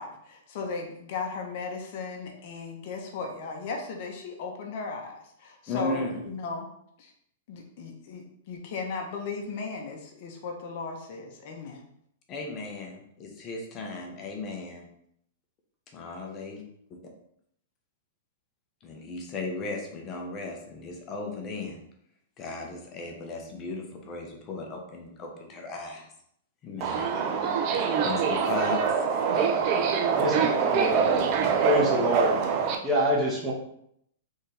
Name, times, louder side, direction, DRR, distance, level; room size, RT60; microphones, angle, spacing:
voice 1, 0.0-6.7 7.0-7.1 7.5-11.8, left 4 dB, 55° left, 2 dB, 0.9 m, -36 dB
voice 2, 5.7-6.3 12.3-14.9 15.9-16.6 18.8-21.8 22.4-26.1 26.6-27.1 27.7-29.0, left 3 dB, 30° left, 2 dB, 0.9 m, -36 dB
Subway metro underground, 26.8-32.8, right 6 dB, 40° right, 0.6 m, -25 dB
voice 3, 30.2-31.2 31.6-32.4 32.8-33.5, equal, 25° right, -2 dB, 1.2 m, -26 dB
4.2 x 3.6 x 3.3 m, 0.72 s
hypercardioid pair, 135°, 0 cm